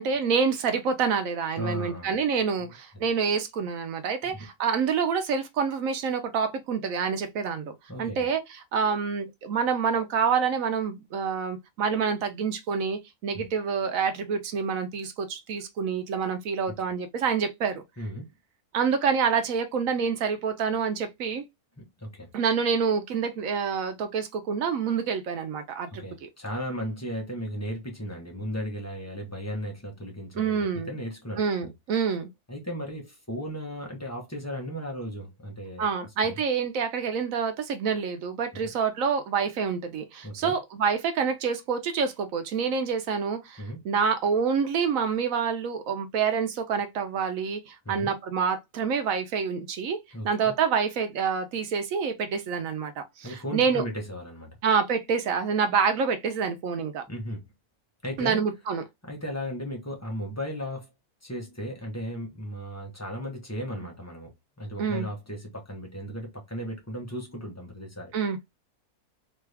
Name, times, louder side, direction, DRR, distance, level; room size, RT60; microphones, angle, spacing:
voice 1, 0.0-8.4 8.7-17.8 18.7-21.4 22.3-26.3 30.3-30.9 31.4-32.3 35.8-50.0 50.2-53.8 54.6-57.0 58.2-58.8 64.8-65.1 68.1-68.5, right 6 dB, 70° right, 1.0 m, -27 dB
voice 2, 1.6-2.2 2.6-3.0 4.2-4.5 7.9-8.3 13.3-13.4 18.0-18.3 21.8-22.3 25.9-31.7 32.5-35.9 36.2-36.4 38.5-38.6 40.2-40.6 43.6-43.8 47.8-48.1 50.1-50.5 53.2-54.6 57.1-57.5 58.0-58.4 59.0-60.9 61.2-64.3 64.6-68.1, equal, 15° left, 0.7 m, -36 dB
3.0 x 2.3 x 3.3 m
omnidirectional pair, 1.6 m